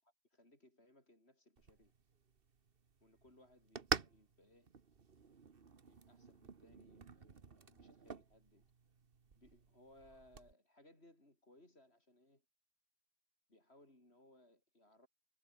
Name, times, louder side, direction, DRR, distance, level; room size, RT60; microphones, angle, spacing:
voice 1, 0.0-1.9 3.0-4.7 5.8-8.7 9.3-12.4 13.5-15.1, left 1 dB, 40° left, 7.8 m, -66 dB
sound 1, 1.6-10.5, right 5 dB, 40° right, 1.4 m, -47 dB
omnidirectional pair, 1.7 m